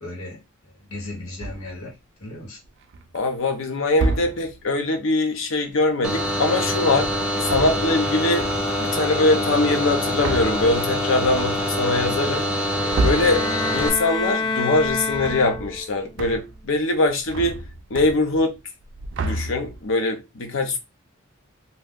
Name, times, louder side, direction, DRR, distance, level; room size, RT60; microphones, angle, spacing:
voice 1, 0.0-0.4 0.8-1.9 2.2-2.6, left 2 dB, 85° left, 1.3 m, -35 dB
sound 1, 1.4-1.9 2.6-3.2 3.9-4.7 7.3-8.1 8.4-8.9 9.7-14.3 14.7-15.9 16.2-16.7 16.9-18.5 18.8-20.0, right 2 dB, 60° right, 0.4 m, -30 dB
voice 2, 3.1-7.1 7.4-8.5 8.8-12.4 13.0-13.5 13.7-17.6 17.9-18.5 19.2-20.8, left 2 dB, 65° left, 0.7 m, -22 dB
sound 2, 6.0-13.9, equal, 5° right, 0.5 m, -25 dB
sound 3, 12.8-16.0, left 4 dB, 20° left, 0.8 m, -28 dB
2.6 x 2.3 x 3.5 m
head